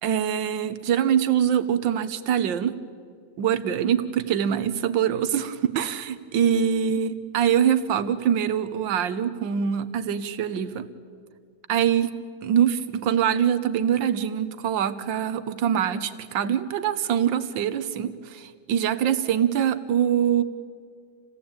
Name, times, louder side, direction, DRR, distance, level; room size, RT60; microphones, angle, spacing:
voice 1, 0.0-2.8 3.4-10.9 11.7-12.1 12.4-20.4, right 9 dB, 75° right, 12 dB, 1.7 m, -24 dB
28.0 x 17.0 x 8.8 m, 2.2 s
omnidirectional pair, 2.1 m